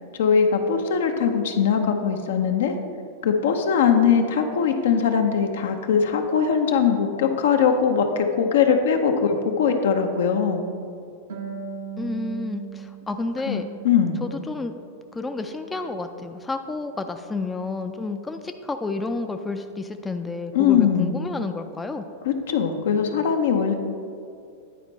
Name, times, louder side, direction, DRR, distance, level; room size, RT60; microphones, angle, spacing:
voice 1, 0.2-2.8 3.2-10.6 13.5-14.2 20.5-21.2 22.3-23.7, left 7 dB, 75° left, 5 dB, 0.7 m, -21 dB
Harp, 11.3-14.7 15.0-16.1, right 7 dB, 80° right, 1.1 m, -39 dB
voice 2, 12.0-13.7 14.2-14.7 15.1-22.1, left 3 dB, 15° left, 6 dB, 0.4 m, -30 dB
10.0 x 4.3 x 4.1 m, 2.4 s
hypercardioid pair, 100°, 0 cm